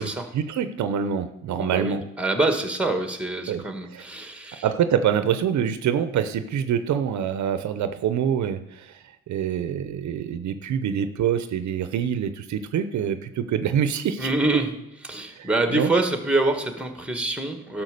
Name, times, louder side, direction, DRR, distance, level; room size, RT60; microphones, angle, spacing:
voice 1, 0.3-2.0 3.5-3.6 3.9-4.0 4.6-14.3 15.4-15.9, right 8 dB, 70° right, 11 dB, 0.8 m, -25 dB
voice 2, 1.6-4.6 14.2-14.7 15.0-17.8, right 2 dB, 5° right, 7 dB, 1.6 m, -25 dB
12.0 x 6.0 x 6.6 m, 0.86 s
cardioid pair, 90°, 30 cm